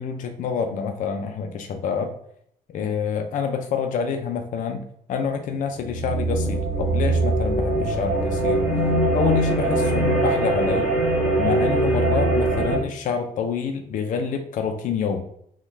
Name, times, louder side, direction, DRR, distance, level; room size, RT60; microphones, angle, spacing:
voice 1, 0.0-2.1 2.7-8.6 9.1-10.9 11.4-15.2, left 6 dB, 55° left, 4 dB, 0.5 m, -27 dB
sound 1, 5.8-12.8, right 2 dB, ahead, 0.9 m, -22 dB
5.6 x 2.3 x 3.2 m, 0.70 s
cardioid pair, 175°, 16 cm